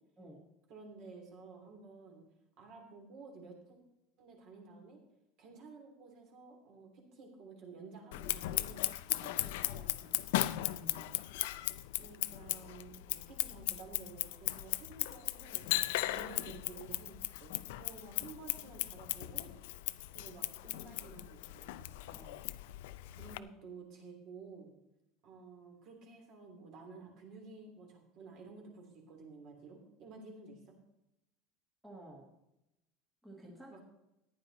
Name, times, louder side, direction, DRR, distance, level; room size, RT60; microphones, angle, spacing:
voice 1, 0.7-2.2 2.6-3.8 4.2-5.0 5.4-8.8 9.1-10.3 12.0-19.5 20.1-21.9 23.1-24.7 25.2-30.8 33.7-33.8, right 4 dB, 40° right, 2 dB, 3.1 m, -52 dB
Scissors, 8.1-23.4, left 16 dB, 85° left, 0.5 m, -37 dB
voice 2, 10.5-11.1 22.1-22.4 31.8-32.3 33.2-33.8, right 1 dB, 5° right, -3 dB, 1.6 m, -53 dB
14.5 x 10.0 x 4.1 m, 0.90 s
cardioid pair, 180°, 0 cm